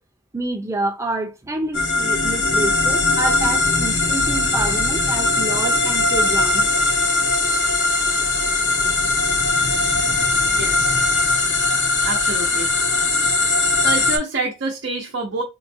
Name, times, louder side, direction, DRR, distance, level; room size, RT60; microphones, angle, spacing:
voice 1, 0.3-6.7, right 2 dB, 15° right, 0.5 m, -28 dB
sound 1, 1.7-14.2, left 3 dB, 70° left, 0.8 m, -19 dB
voice 2, 10.5-11.2 12.0-12.7 13.8-15.4, right 3 dB, 80° right, 0.8 m, -27 dB
3.7 x 2.2 x 2.7 m
head